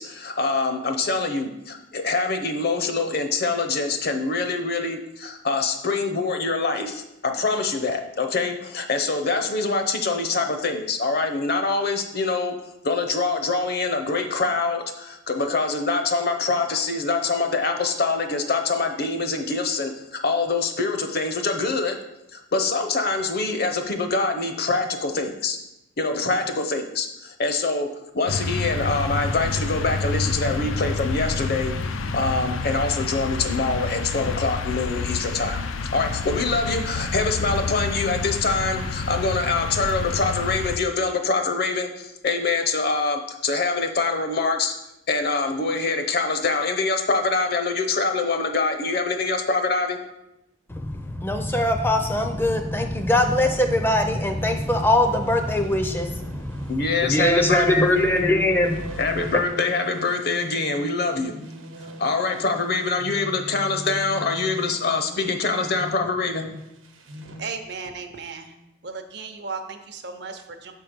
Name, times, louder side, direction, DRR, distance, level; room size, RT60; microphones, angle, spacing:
voice 1, 0.0-12.6 12.8-19.9 20.2-22.0 22.3-25.6 26.0-31.7 32.1-35.6 35.9-44.7 45.1-50.0 56.7-58.4 59.0-61.3 62.0-66.5, left 3 dB, 50° left, 6 dB, 0.7 m, -24 dB
sound 1, 28.3-40.8, left 3 dB, 85° left, 0.5 m, -28 dB
voice 2, 50.7-59.0 59.3-59.4, left 1 dB, 10° left, 6 dB, 0.5 m, -22 dB
sound 2, 54.4-67.5, equal, 85° right, 1.0 m, -40 dB
voice 3, 67.2-68.5 68.8-70.7, right 4 dB, 55° right, 7 dB, 0.7 m, -35 dB
6.8 x 4.5 x 5.1 m, 0.88 s
head